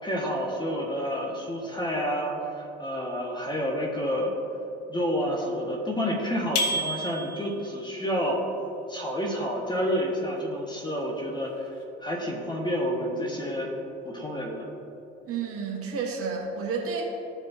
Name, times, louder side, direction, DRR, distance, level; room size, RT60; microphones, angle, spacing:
voice 1, 0.0-4.3 4.9-8.4 8.9-11.7 12.0-13.7 14.0-14.6, equal, 15° left, -1 dB, 1.6 m, -29 dB
sound 1, 6.6-7.6, equal, 45° left, 1.2 m, -28 dB
voice 2, 15.3-17.0, right 5 dB, 45° right, -2 dB, 1.6 m, -31 dB
15.0 x 5.2 x 2.8 m, 2.9 s
figure-of-eight pair, 55°, 33 cm